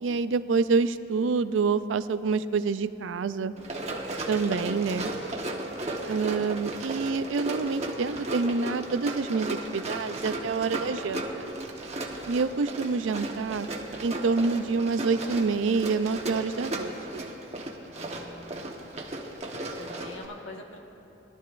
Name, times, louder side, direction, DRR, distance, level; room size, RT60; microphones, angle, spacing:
voice 1, 0.0-3.5 4.3-5.1 6.1-11.5 12.3-13.7 14.0-17.3, right 4 dB, 80° right, 13 dB, 0.4 m, -27 dB
Run, 3.6-20.2, right 1 dB, 35° right, 1.1 m, -35 dB
voice 2, 6.1-6.7 17.8-18.9 19.7-20.8, left 2 dB, 90° left, 0 dB, 1.5 m, -46 dB
21.5 x 12.5 x 2.5 m, 2.9 s
head